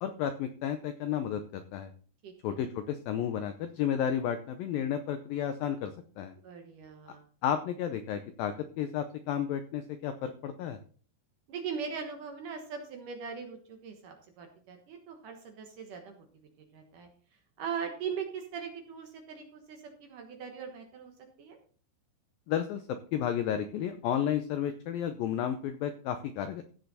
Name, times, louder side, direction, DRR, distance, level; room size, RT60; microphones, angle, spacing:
voice 1, 0.0-1.9 2.4-6.3 7.4-10.8 22.5-22.8 23.1-26.6, left 9 dB, 80° left, 8 dB, 2.1 m, -32 dB
voice 2, 2.2-2.6 6.4-7.2 11.5-16.3 16.7-17.1 17.6-21.1 21.4-21.6, right 6 dB, 60° right, 4 dB, 2.4 m, -40 dB
16.0 x 6.7 x 4.2 m, 0.42 s
omnidirectional pair, 5.0 m